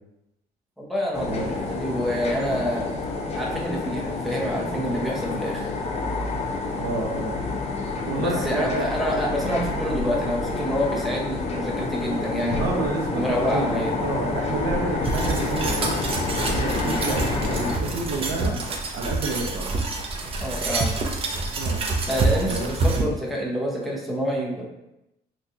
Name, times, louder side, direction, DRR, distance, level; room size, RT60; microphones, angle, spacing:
voice 1, 0.8-2.9 3.3-5.6 8.2-12.7 13.1-13.9 16.8-17.0 20.4-21.0 22.1-24.7, equal, ahead, -3 dB, 0.7 m, -27 dB
sound 1, 1.1-17.8, left 3 dB, 40° left, 0.6 m, -28 dB
voice 2, 6.8-7.4 8.0-8.9 12.6-16.0 16.4-18.6 18.9-19.7 21.6-21.8 22.4-22.7, right 3 dB, 75° right, 2 dB, 0.7 m, -29 dB
sound 2, 11.7-18.6, left 2 dB, 75° left, 0.8 m, -38 dB
sound 3, 15.0-23.0, right 3 dB, 35° right, 0.5 m, -27 dB
3.9 x 2.4 x 2.7 m, 0.89 s
cardioid pair, 110°, 17 cm